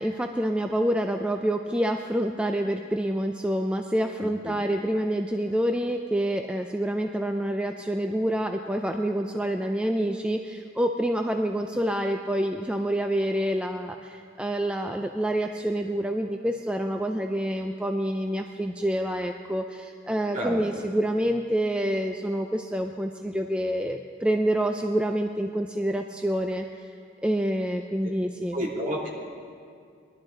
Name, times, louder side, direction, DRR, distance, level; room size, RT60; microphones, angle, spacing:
voice 1, 0.0-26.7 27.2-28.6, right 1 dB, 5° right, 4 dB, 0.4 m, -27 dB
voice 2, 20.3-20.8 28.5-29.1, equal, 45° right, -3 dB, 2.7 m, -30 dB
21.5 x 12.0 x 3.8 m, 2.4 s
head